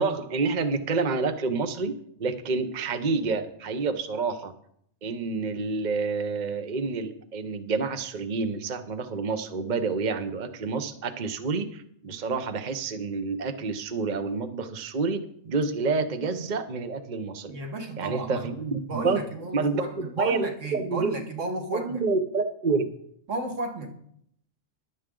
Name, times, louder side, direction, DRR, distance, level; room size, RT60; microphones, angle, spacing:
voice 1, 0.0-4.5 5.0-15.2 15.4-17.5 18.0-19.2 19.5-21.1 21.7-22.9, right 4 dB, 40° right, 0.9 m, -28 dB
voice 2, 17.5-18.6 18.9-22.0 23.3-24.0, right 2 dB, 70° right, 2.0 m, -33 dB
15.0 x 11.0 x 3.8 m
omnidirectional pair, 1.3 m